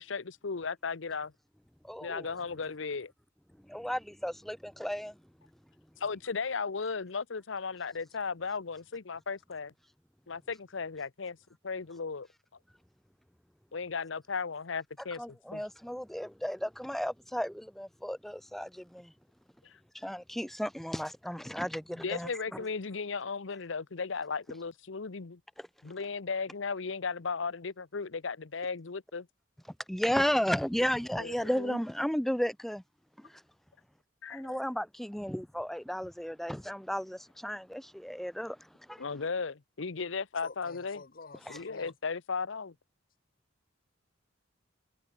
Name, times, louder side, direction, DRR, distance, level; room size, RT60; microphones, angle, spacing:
voice 1, 0.0-1.3 2.0-3.1 6.0-9.7 10.3-11.4 11.6-12.3 13.7-15.2 15.5-15.6 22.0-25.4 25.8-29.3 31.2-31.8 34.2-34.6 39.0-41.0 41.5-42.7, left 5 dB, 70° left, 0.8 m, -36 dB
voice 2, 1.8-2.3 3.6-5.2 15.2-19.1 19.9-22.7 25.6-25.7 29.9-32.8 33.2-33.4 34.3-39.0 41.5-41.6, equal, ahead, 0.3 m, -34 dB
voice 3, 40.4-41.9, left 4 dB, 50° left, 1.3 m, -49 dB
head